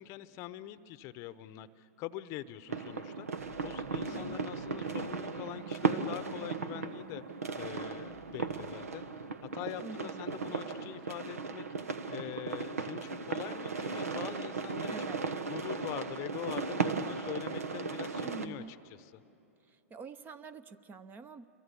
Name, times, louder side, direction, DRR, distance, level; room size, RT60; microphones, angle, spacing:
voice 1, 0.0-3.3 3.6-7.2 7.6-9.1 9.4-11.7 12.1-14.9 15.5-19.2, left 13 dB, 40° left, 15 dB, 0.8 m, -43 dB
sound 1, 2.7-18.5, right 4 dB, 85° right, 1.2 m, -36 dB
sound 2, 3.4-9.5, right 5 dB, 65° right, 1.3 m, -49 dB
voice 2, 4.1-4.5 9.8-10.4 14.9-15.2 18.2-18.7 19.7-21.4, right 4 dB, 25° right, 15 dB, 0.8 m, -47 dB
27.5 x 23.0 x 7.0 m, 2.7 s
hypercardioid pair, 110°, 8 cm